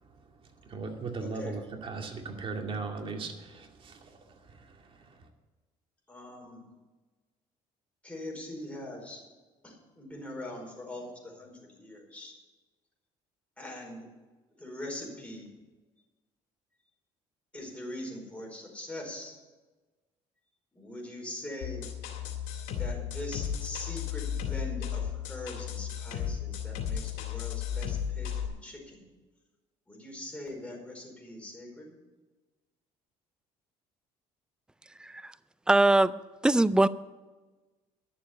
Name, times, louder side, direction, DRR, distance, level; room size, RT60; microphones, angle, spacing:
voice 1, 0.6-5.3, right 4 dB, 40° right, 3 dB, 2.3 m, -38 dB
voice 2, 1.2-1.6 6.1-6.6 8.0-9.2 9.6-12.3 13.6-14.1 14.6-15.5 17.5-19.3 20.7-21.9 22.7-29.1 29.9-31.9, left 1 dB, 10° left, -1 dB, 4.8 m, -42 dB
sound 1, 21.6-28.5, left 9 dB, 85° left, 2.2 m, -34 dB
voice 3, 35.0-35.3 35.7-36.9, right 2 dB, 5° right, 17 dB, 0.4 m, -23 dB
11.5 x 7.2 x 9.5 m, 1.2 s
supercardioid pair, 90°, 13 cm